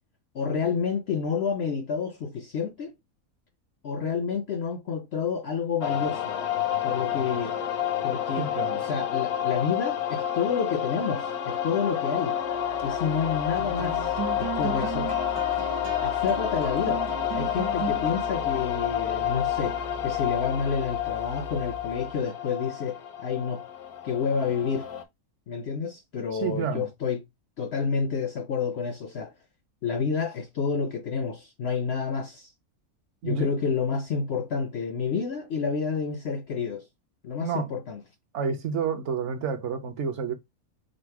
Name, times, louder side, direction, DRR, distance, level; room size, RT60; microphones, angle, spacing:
voice 1, 0.3-2.9 3.8-6.4 6.8-7.6 8.0-8.5 8.7-12.4 12.8-15.1 16.0-17.0 17.3-19.8 20.0-23.6 24.0-24.9 25.5-27.2 27.6-29.3 29.8-32.5 33.2-36.9 37.2-38.0, left 6 dB, 65° left, 0.7 m, -29 dB
sound 1, 5.8-25.0, left 10 dB, 85° left, 1.3 m, -29 dB
voice 2, 8.4-8.8 26.3-26.9 33.2-33.5 37.4-37.7 38.3-40.3, right 6 dB, 60° right, 1.0 m, -29 dB
sound 2, 12.6-22.2, right 3 dB, 90° right, 1.4 m, -38 dB
5.1 x 2.0 x 4.5 m
omnidirectional pair, 1.6 m